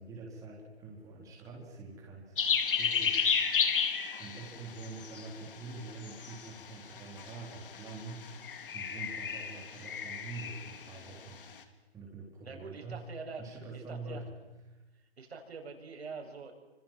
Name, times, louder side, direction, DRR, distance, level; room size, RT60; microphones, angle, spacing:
voice 1, 0.0-3.2 4.2-11.4 11.9-13.1 13.4-14.3 14.7-14.8, right 3 dB, 10° right, -2 dB, 4.1 m, -45 dB
sound 1, 2.4-11.0, left 6 dB, 50° left, 3.3 m, -33 dB
voice 2, 12.4-13.4 13.7-14.2 15.2-16.5, right 4 dB, 65° right, 3 dB, 7.3 m, -44 dB
28.0 x 26.0 x 7.6 m, 1.1 s
hypercardioid pair, 155°, 34 cm